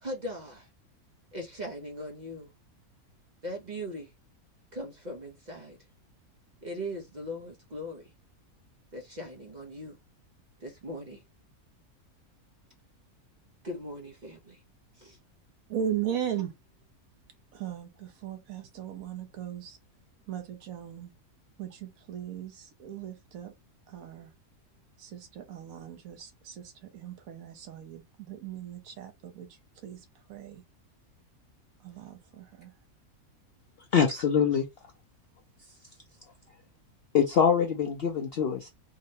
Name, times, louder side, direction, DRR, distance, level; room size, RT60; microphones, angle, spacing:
voice 1, 0.0-0.7 1.3-2.5 3.4-4.1 4.7-5.8 6.6-8.0 8.9-10.0 10.6-11.2 13.6-14.6 15.0-15.2, equal, 50° right, 0.5 m, -39 dB
voice 2, 15.7-16.5 17.5-19.8 20.3-21.1 21.6-23.5 23.9-24.3 25.0-29.5 29.8-30.0 30.3-30.6 31.8-32.7, right 9 dB, 70° right, 1.2 m, -37 dB
voice 3, 33.9-34.6 37.1-38.7, left 7 dB, 65° left, 0.6 m, -24 dB
3.7 x 2.1 x 2.7 m
omnidirectional pair, 1.6 m